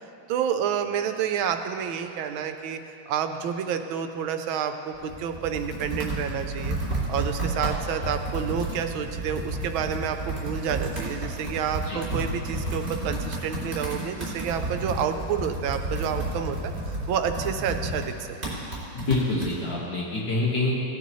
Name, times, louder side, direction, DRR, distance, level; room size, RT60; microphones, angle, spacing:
voice 1, 0.3-2.8 3.1-6.8 7.1-16.7 17.1-18.1 18.4-18.5, right 8 dB, 75° right, 7 dB, 1.4 m, -29 dB
Computer keyboard, 4.9-19.5, right 1 dB, 30° right, 3.3 m, -31 dB
voice 2, 18.9-20.7, left 2 dB, 60° left, -5 dB, 2.2 m, -26 dB
17.0 x 9.7 x 3.1 m, 2.8 s
omnidirectional pair, 2.3 m